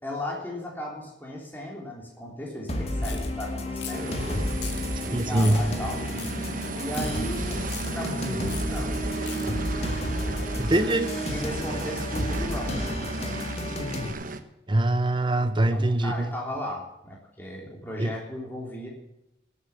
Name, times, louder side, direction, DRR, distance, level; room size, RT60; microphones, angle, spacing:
voice 1, 0.0-4.7 5.0-6.1 6.8-9.0 10.0-10.7 11.3-13.0 15.4-18.9, left 1 dB, 10° left, -2 dB, 3.4 m, -36 dB
sound 1, 2.7-14.1, left 1 dB, 35° left, 1.8 m, -31 dB
sound 2, 3.0-3.3 3.8-4.1 4.6-4.8 5.4-5.6 6.2-6.3 6.9-7.1 7.7-7.9 8.5-8.6 9.3-9.5, left 8 dB, 70° left, 2.4 m, -39 dB
sound 3, 3.9-14.4, right 3 dB, 45° right, 1.2 m, -35 dB
voice 2, 5.1-5.6 10.6-11.1 14.7-16.3 18.0-18.1, right 1 dB, 25° right, 10 dB, 0.8 m, -23 dB
19.0 x 8.4 x 5.8 m, 0.89 s
head